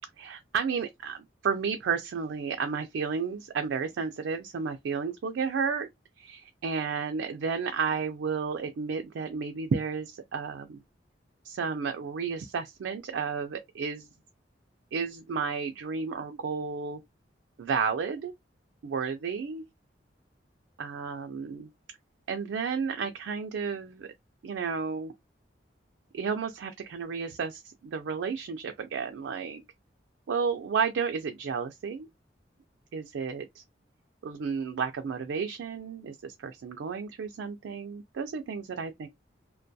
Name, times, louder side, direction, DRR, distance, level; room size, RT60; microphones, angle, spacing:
voice 1, 0.2-5.9 6.2-10.8 11.4-14.1 14.9-17.0 17.6-18.3 18.8-19.6 20.8-21.7 22.3-24.1 24.4-25.1 26.1-29.6 30.3-32.1 32.9-33.6 34.2-39.1, right 5 dB, 85° right, 0.4 m, -32 dB
2.2 x 2.1 x 2.6 m
head